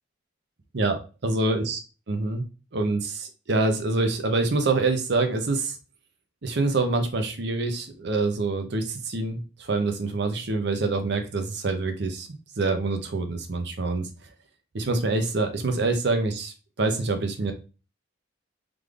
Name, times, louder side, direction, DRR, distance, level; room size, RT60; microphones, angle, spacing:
voice 1, 0.7-1.8 2.1-2.5 2.7-5.8 6.4-14.1 14.7-17.5, right 3 dB, 60° right, 6 dB, 0.7 m, -26 dB
3.7 x 3.3 x 2.4 m, 0.33 s
head